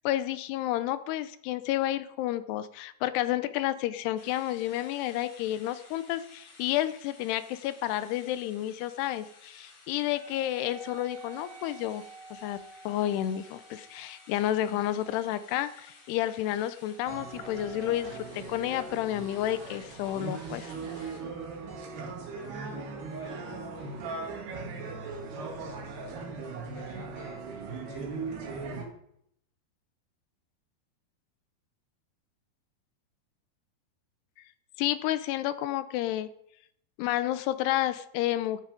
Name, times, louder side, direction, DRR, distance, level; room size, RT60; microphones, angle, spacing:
voice 1, 0.0-12.0 12.3-12.6 12.9-20.8 34.8-36.3 37.0-38.6, left 13 dB, 85° left, 14 dB, 2.8 m, -30 dB
sound 1, 4.2-21.2, left 3 dB, 45° left, 3.5 m, -55 dB
Wind instrument woodwind instrument, 10.1-19.0, right 4 dB, 60° right, 3.2 m, -52 dB
sound 2, 17.1-28.9, right 4 dB, 80° right, 4.0 m, -39 dB
voice 2, 21.8-26.4 26.6-28.8, equal, 45° right, -2 dB, 1.5 m, -47 dB
12.5 x 11.5 x 5.1 m, 0.73 s
omnidirectional pair, 4.7 m